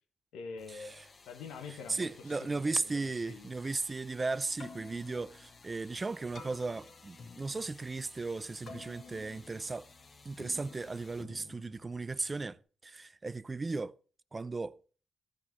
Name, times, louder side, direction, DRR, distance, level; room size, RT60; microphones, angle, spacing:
voice 1, 0.3-3.5, left 5 dB, 90° left, 1.6 m, -46 dB
sound 1, 0.6-11.2, left 3 dB, 35° left, 1.0 m, -58 dB
voice 2, 1.9-9.9 10.2-13.9 14.3-14.8, right 3 dB, 25° right, 0.5 m, -36 dB
Keyboard (musical), 4.4-12.6, left 4 dB, 55° left, 2.1 m, -53 dB
14.5 x 5.3 x 6.1 m
cardioid pair, 85°, 0 cm